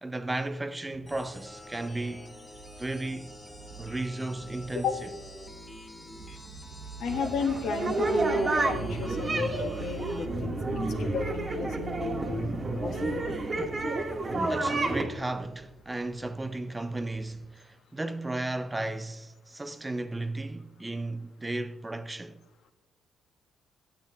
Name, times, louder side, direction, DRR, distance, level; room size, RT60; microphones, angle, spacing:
voice 1, 0.0-2.3 2.8-3.3 3.8-5.1 14.3-22.4, right 2 dB, 15° right, 0.4 m, -34 dB
sound 1, 0.9-17.5, right 5 dB, 60° right, 0.8 m, -45 dB
sound 2, 1.1-10.2, left 1 dB, 25° left, 1.2 m, -48 dB
voice 2, 7.0-12.5 12.8-13.3, left 5 dB, 75° left, 0.9 m, -33 dB
sound 3, 7.1-15.0, right 2 dB, 35° right, 1.1 m, -30 dB
8.5 x 8.4 x 2.7 m
cardioid pair, 90°, 0 cm